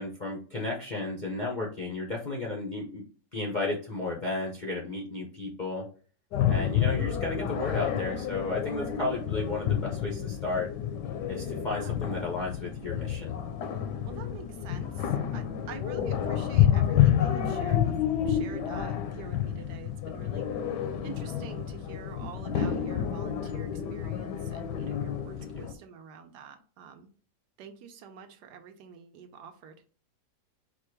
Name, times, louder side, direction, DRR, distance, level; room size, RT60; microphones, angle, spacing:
voice 1, 0.0-3.0 3.3-5.9 6.5-10.7 11.3-13.4 25.1-25.6, left 2 dB, 55° left, -3 dB, 0.5 m, -33 dB
sound 1, 6.3-25.7, left 10 dB, 80° left, 1.2 m, -29 dB
voice 2, 11.5-12.0 14.0-17.9 18.2-20.5 21.0-27.1 27.6-29.7, right 7 dB, 75° right, 6 dB, 1.3 m, -47 dB
4.5 x 2.3 x 4.5 m, 0.40 s
omnidirectional pair, 1.8 m